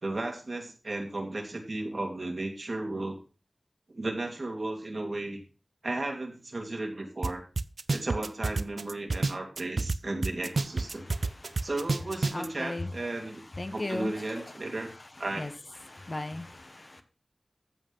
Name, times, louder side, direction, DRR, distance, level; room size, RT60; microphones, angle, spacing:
voice 1, 0.0-3.2 3.9-5.4 5.8-7.4 7.9-11.1 11.6-13.4 13.7-14.9 15.2-15.5, right 2 dB, 60° right, 2.8 m, -34 dB
sound 1, 7.2-7.3 7.6-10.0 10.2-12.5, right 3 dB, 80° right, 0.6 m, -28 dB
voice 2, 11.0-11.7 12.3-12.9 13.5-14.9 15.3-15.5 15.8-17.0, left 2 dB, 45° left, 1.5 m, -38 dB
14.5 x 5.4 x 5.7 m
wide cardioid pair, 70°, 0 cm